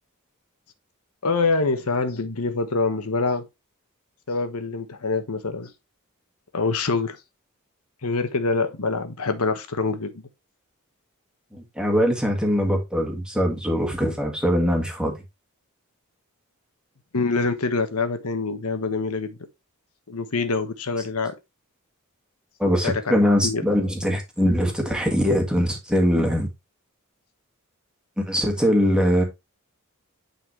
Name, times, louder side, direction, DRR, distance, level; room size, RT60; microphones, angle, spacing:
voice 1, 1.2-3.4 4.3-5.7 6.5-7.2 8.0-10.2 17.1-19.4 20.1-21.3 22.8-23.0 23.4-23.6, left 3 dB, 80° left, 1.1 m, -25 dB
voice 2, 11.5-15.2 22.6-26.5 28.2-29.2, equal, 5° right, 1.9 m, -22 dB
9.3 x 4.2 x 3.2 m
head